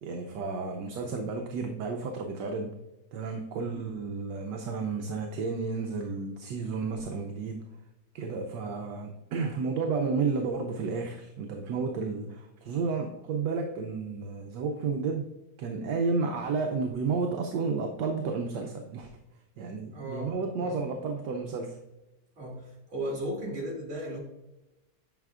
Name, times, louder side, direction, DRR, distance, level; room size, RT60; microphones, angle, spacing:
voice 1, 0.0-2.8 3.1-7.7 8.1-15.3 15.6-19.1 19.6-21.8, right 4 dB, 70° right, 3 dB, 1.1 m, -32 dB
voice 2, 19.9-20.8 22.4-24.2, right 1 dB, 40° right, -1 dB, 2.1 m, -36 dB
9.1 x 5.5 x 2.4 m, 1.0 s
omnidirectional pair, 2.2 m